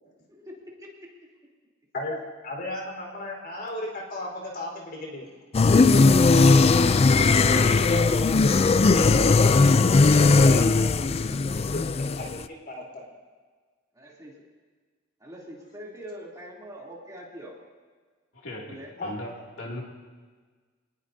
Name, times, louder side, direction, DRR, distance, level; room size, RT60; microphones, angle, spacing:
voice 1, 0.3-1.1 13.9-14.4 15.2-17.6 18.6-18.9, equal, 20° right, -4 dB, 3.0 m, -44 dB
voice 2, 1.9-5.2 10.3-11.8 12.1-13.0 19.0-19.1, left 1 dB, 50° left, -1 dB, 4.3 m, -35 dB
sound 1, 5.5-12.4, left 3 dB, 30° left, 0.4 m, -18 dB
voice 3, 7.0-8.2 18.4-19.3 19.6-19.8, left 1 dB, 85° left, -2 dB, 2.6 m, -36 dB
25.5 x 20.0 x 2.8 m, 1.5 s
head